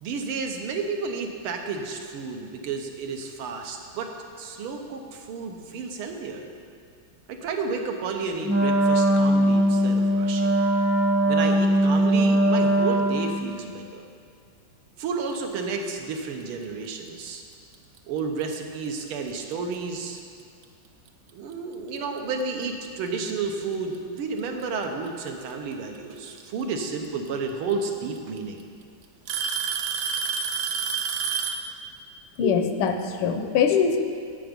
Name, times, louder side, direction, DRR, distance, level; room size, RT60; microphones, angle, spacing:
voice 1, 0.0-6.5 7.3-10.6 11.3-14.1 15.0-17.4 18.1-20.2 21.3-28.7, right 4 dB, 90° right, 3 dB, 1.8 m, -31 dB
Wind instrument woodwind instrument, 8.4-13.6, right 1 dB, 10° right, 0.5 m, -21 dB
Alarm / Tick-tock, 17.7-18.0 18.9-19.0 19.7-19.8 21.5-21.6 22.8-22.9 24.2-24.6 26.4-26.5 27.7-27.8 28.2-28.6 29.3-31.7, right 6 dB, 75° right, 1.3 m, -28 dB
voice 2, 32.4-34.0, left 6 dB, 85° left, 6 dB, 1.6 m, -22 dB
11.0 x 7.9 x 5.2 m, 2.3 s
omnidirectional pair, 2.3 m